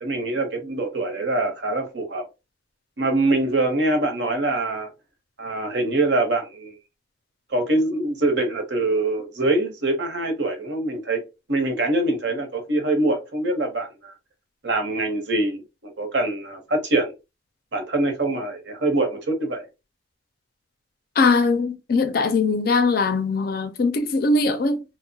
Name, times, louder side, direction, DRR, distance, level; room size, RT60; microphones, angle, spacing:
voice 1, 0.0-2.2 3.0-4.9 5.4-6.7 7.5-11.2 11.5-14.1 14.6-17.1 17.7-19.6, right 2 dB, 65° right, 0.8 m, -24 dB
voice 2, 21.2-24.8, left 3 dB, 50° left, 0.4 m, -21 dB
2.8 x 2.0 x 2.7 m
head